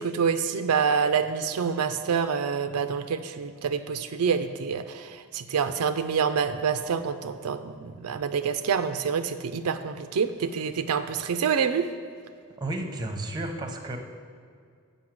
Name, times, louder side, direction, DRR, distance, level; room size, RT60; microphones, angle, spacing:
voice 1, 0.0-11.9, right 6 dB, 85° right, 9 dB, 0.5 m, -27 dB
voice 2, 12.6-14.0, right 1 dB, 20° right, 4 dB, 0.8 m, -32 dB
7.8 x 5.4 x 7.3 m, 2.2 s
head